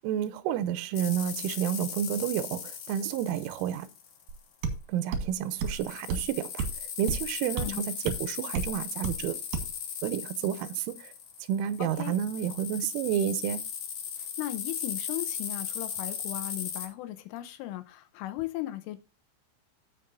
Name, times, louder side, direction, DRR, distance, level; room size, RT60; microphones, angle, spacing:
voice 1, 0.0-3.9 4.9-6.7 7.0-9.4 10.0-11.1 11.5-13.6, right 10 dB, 85° right, 3.2 m, -30 dB
sound 1, 0.9-4.3 5.4-16.9, left 8 dB, 60° left, 2.1 m, -38 dB
sound 2, 4.3-4.4 4.6-4.8 5.1-5.3 5.6-5.8 6.1-6.3 6.6-6.8 7.1-7.2 7.6-7.7 8.1-8.2 8.5-8.7 9.0-9.2 9.5-9.7, right 5 dB, 60° right, 2.2 m, -30 dB
voice 2, 11.8-12.1 14.2-19.0, left 15 dB, 85° left, 3.3 m, -37 dB
15.5 x 5.4 x 2.6 m
omnidirectional pair, 5.7 m